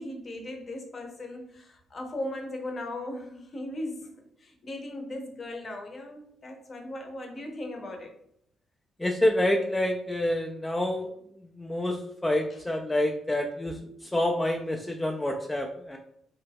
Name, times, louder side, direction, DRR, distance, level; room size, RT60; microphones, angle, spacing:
voice 1, 0.0-4.1 4.4-8.2 12.5-12.6, left 1 dB, 40° left, 0.7 m, -38 dB
voice 2, 9.0-11.1 11.4-16.0, left 1 dB, 15° left, 0.3 m, -28 dB
2.7 x 2.2 x 3.4 m
cardioid pair, 90°, 0 cm